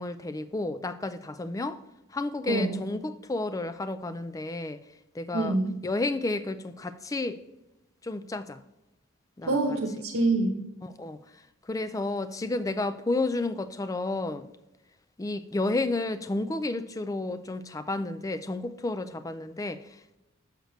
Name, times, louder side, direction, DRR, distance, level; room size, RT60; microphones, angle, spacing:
voice 1, 0.0-1.8 2.1-4.8 5.1-5.5 5.8-7.4 8.0-8.6 9.4-9.6 10.8-14.5 15.2-20.2, left 2 dB, 15° left, 0.3 m, -31 dB
voice 2, 2.5-2.8 5.3-5.7 9.4-10.6, right 2 dB, 90° right, 0.9 m, -26 dB
6.6 x 6.5 x 3.1 m
head